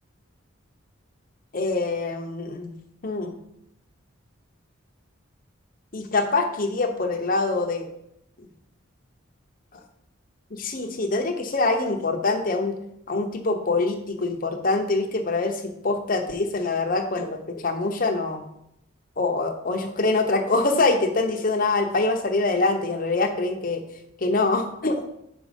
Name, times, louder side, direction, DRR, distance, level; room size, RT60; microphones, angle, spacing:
voice 1, 1.5-2.7 3.0-3.3 5.9-7.9 9.7-9.8 10.5-12.7 13.1-18.4 19.2-23.8 24.2-25.0, left 3 dB, 40° left, 4 dB, 0.8 m, -24 dB
6.2 x 4.6 x 5.1 m, 0.79 s
head